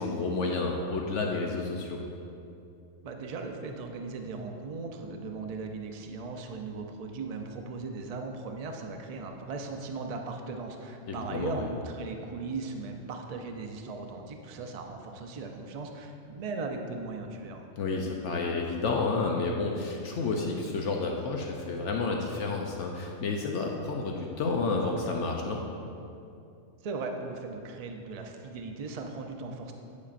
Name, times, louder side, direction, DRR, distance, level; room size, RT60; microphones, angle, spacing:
voice 1, 0.0-2.0 11.1-11.6 17.8-25.7, left 3 dB, 70° left, 0 dB, 0.9 m, -30 dB
voice 2, 3.0-17.7 26.8-29.7, right 3 dB, 75° right, 3 dB, 0.3 m, -38 dB
8.6 x 8.3 x 2.5 m, 2.6 s
omnidirectional pair, 1.3 m